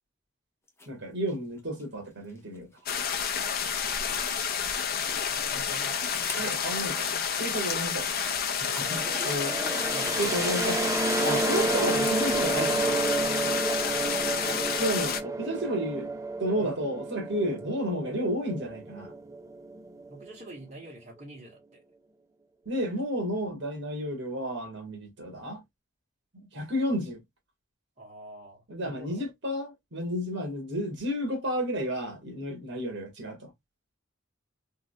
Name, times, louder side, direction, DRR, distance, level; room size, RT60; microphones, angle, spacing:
sound 1, 0.7-0.9 1.3-2.8 3.2-11.7, left 2 dB, 15° left, 0.9 m, -45 dB
voice 1, 0.9-2.7 6.4-8.2 8.6-9.0 9.3-9.5 10.2-10.9 11.2-13.1 14.8-16.1 16.4-19.1 22.6-25.6 26.3-27.2 28.7-33.5, equal, 60° right, 1.6 m, -32 dB
sound 2, 2.9-15.2, left 7 dB, 50° left, 0.6 m, -30 dB
voice 2, 4.9-6.6 8.9-9.4 9.9-10.6 13.9-15.1 16.6-16.7 20.1-21.8 28.0-29.3, right 2 dB, 35° right, 1.5 m, -47 dB
sound 3, 8.8-20.5, right 3 dB, 15° right, 0.4 m, -31 dB
3.7 x 3.1 x 2.3 m
head